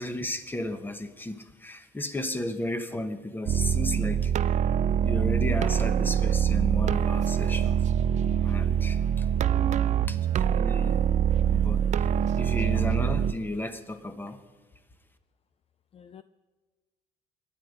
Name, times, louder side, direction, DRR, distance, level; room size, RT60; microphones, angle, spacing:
voice 1, 0.0-4.3 5.0-7.8 8.4-9.0 10.1-11.0 11.4-11.8 12.3-14.4, left 1 dB, 10° left, 8 dB, 1.3 m, -34 dB
sound 1, 3.5-13.3, right 9 dB, 45° right, 0.4 m, -24 dB
voice 2, 8.8-9.0 9.3-9.5 12.7-12.9 15.9-16.2, left 8 dB, 35° left, 12 dB, 0.5 m, -48 dB
23.0 x 9.7 x 5.2 m, 1.3 s
cardioid pair, 110°, 17 cm